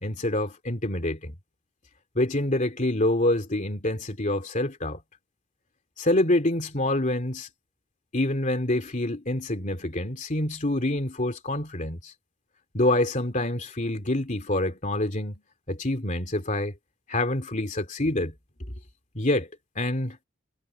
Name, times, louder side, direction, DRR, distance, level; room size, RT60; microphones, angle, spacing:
voice 1, 0.0-1.3 2.1-5.0 6.0-7.5 8.1-12.1 12.7-15.4 15.7-16.7 17.1-18.3 19.1-19.5 19.7-20.2, left 1 dB, 35° left, 2.9 m, -26 dB
head